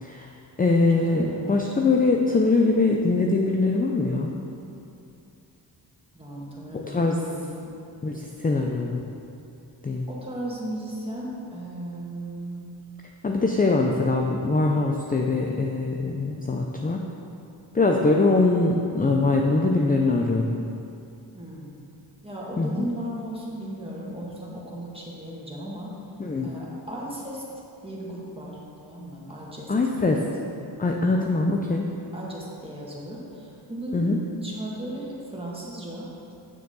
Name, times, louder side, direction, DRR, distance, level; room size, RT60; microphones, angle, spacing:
voice 1, 0.0-0.3 0.6-4.3 6.7-7.3 8.0-9.0 9.8-10.1 13.2-17.1 17.7-20.6 22.6-22.9 26.2-26.5 29.7-30.3 30.8-31.8 33.9-34.2, left 3 dB, 20° left, 1 dB, 0.6 m, -22 dB
voice 2, 1.0-1.7 6.1-7.7 10.1-12.6 21.3-21.8 22.2-25.9 26.4-27.4 27.8-29.7 30.1-30.5 32.1-34.1 34.4-36.1, right 1 dB, 15° right, -5 dB, 2.1 m, -36 dB
9.1 x 6.7 x 4.0 m, 2.7 s
cardioid pair, 70°, 43 cm